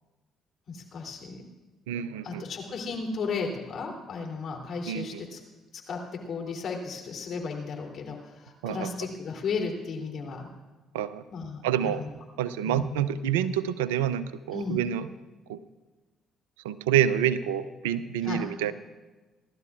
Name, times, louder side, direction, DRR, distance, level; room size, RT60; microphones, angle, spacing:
voice 1, 0.7-1.4 2.2-5.4 5.7-6.0 6.3-10.5 11.3-12.1 12.6-13.0 14.5-14.8 18.2-18.4, left 4 dB, 55° left, 0 dB, 3.2 m, -34 dB
voice 2, 1.9-2.4 4.9-5.2 8.6-8.9 10.9-11.2 11.6-12.0 12.4-15.1 15.5-15.6 16.6-18.7, right 10 dB, 80° right, 15 dB, 0.5 m, -27 dB
29.5 x 12.5 x 2.5 m, 1.2 s
hypercardioid pair, 50°, 0 cm